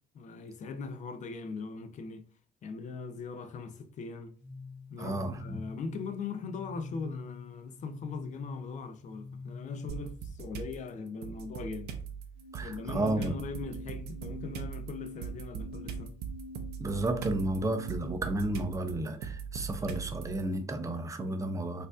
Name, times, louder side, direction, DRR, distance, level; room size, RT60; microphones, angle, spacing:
voice 1, 0.1-2.3 2.6-4.4 4.9-12.0 12.6-16.2, left 4 dB, 45° left, 0.5 m, -40 dB
sound 1, 4.4-10.3 12.4-18.4, left 3 dB, 85° left, 0.9 m, -46 dB
voice 2, 5.0-5.6 12.5-13.4 16.8-21.9, right 1 dB, 20° right, 0.5 m, -32 dB
sound 2, 9.9-10.7 11.2-20.4, right 7 dB, 75° right, 0.6 m, -40 dB
4.3 x 2.5 x 2.4 m
cardioid pair, 110°, 17 cm